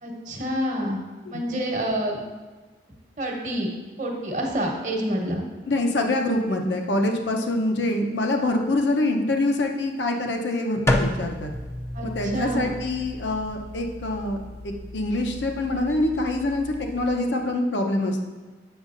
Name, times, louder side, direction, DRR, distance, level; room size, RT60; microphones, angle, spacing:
voice 1, 0.0-1.0 1.3-2.2 3.2-3.7 4.0-5.4 11.9-12.7, equal, 45° right, 1 dB, 1.0 m, -27 dB
voice 2, 5.7-11.5 12.1-14.4 14.6-18.2, left 1 dB, 80° left, 3 dB, 0.7 m, -25 dB
sound 1, 10.9-17.1, left 1 dB, 15° left, 0.4 m, -31 dB
8.1 x 6.3 x 2.5 m, 1.3 s
head